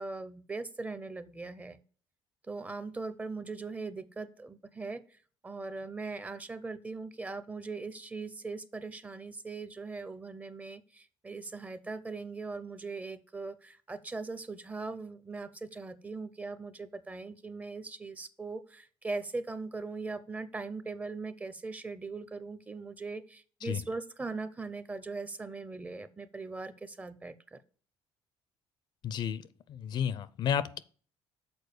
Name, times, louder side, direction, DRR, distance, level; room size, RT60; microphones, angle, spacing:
voice 1, 0.0-1.8 2.5-5.0 5.4-27.6, right 3 dB, 15° right, 0.5 m, -40 dB
voice 2, 29.0-29.4 29.7-30.8, left 8 dB, 50° left, 0.4 m, -32 dB
6.9 x 4.4 x 6.5 m
cardioid pair, 150°, 10 cm